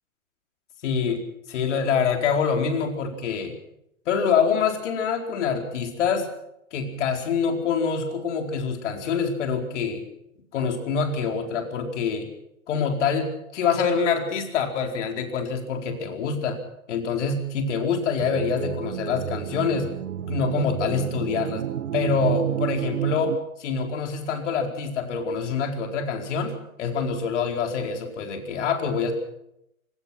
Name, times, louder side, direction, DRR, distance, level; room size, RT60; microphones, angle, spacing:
voice 1, 0.8-3.5 4.1-6.3 6.7-10.0 10.5-12.3 12.7-16.6 16.9-19.9 20.2-21.6 21.9-29.1, left 6 dB, 55° left, 4 dB, 4.5 m, -25 dB
sound 1, 18.2-23.4, right 11 dB, 70° right, 1.4 m, -30 dB
24.5 x 18.5 x 5.9 m, 0.80 s
hypercardioid pair, 145°, 42 cm